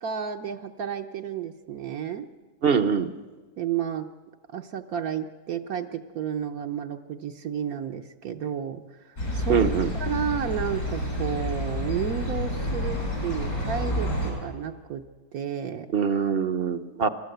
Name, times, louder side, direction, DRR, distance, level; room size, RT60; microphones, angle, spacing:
voice 1, 0.0-2.3 3.6-4.1 4.5-9.6 9.9-15.1 15.3-15.9, right 8 dB, 70° right, 4 dB, 1.3 m, -32 dB
voice 2, 2.6-3.1 9.5-9.9 15.9-17.1, right 6 dB, 45° right, 12 dB, 0.9 m, -23 dB
sound 1, 9.2-14.3, left 1 dB, 80° left, 6.7 m, -29 dB
29.0 x 13.0 x 7.9 m, 1.3 s
omnidirectional pair, 1.6 m